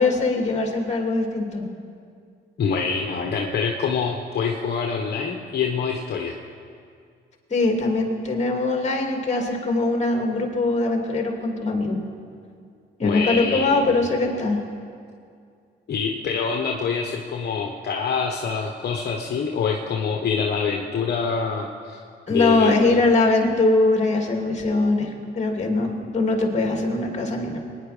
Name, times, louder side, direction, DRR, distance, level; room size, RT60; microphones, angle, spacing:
voice 1, 0.0-1.7 7.5-12.0 13.0-14.6 22.3-27.6, left 2 dB, 35° left, 2 dB, 2.7 m, -22 dB
voice 2, 2.6-6.4 13.0-14.0 15.9-22.0 22.3-23.0, left 5 dB, 55° left, 1 dB, 1.3 m, -25 dB
22.0 x 10.0 x 5.1 m, 2.3 s
cardioid pair, 90°, 20 cm